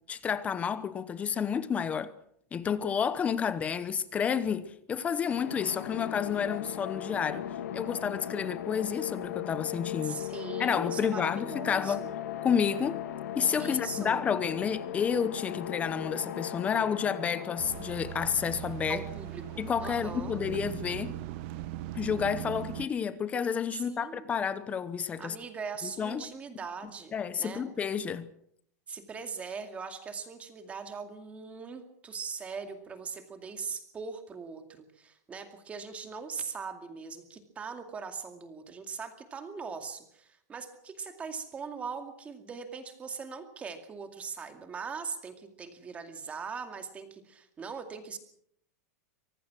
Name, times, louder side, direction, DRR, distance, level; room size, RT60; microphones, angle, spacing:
voice 1, 0.1-2.1 2.5-7.4 7.7-10.2 10.6-12.0 12.4-13.0 13.3-19.0 19.6-21.2 21.9-25.3 25.8-26.3 27.1-28.3, left 7 dB, 15° left, 0.9 m, -30 dB
sound 1, 5.2-19.9, left 10 dB, 80° left, 1.9 m, -38 dB
voice 2, 10.0-12.1 13.6-14.2 18.9-19.4 19.8-20.4 23.7-24.3 25.2-27.7 28.9-48.2, right 5 dB, 15° right, 2.3 m, -40 dB
sound 2, 17.6-22.9, right 14 dB, 45° right, 1.0 m, -39 dB
25.0 x 18.0 x 6.1 m
supercardioid pair, 165°, 9 cm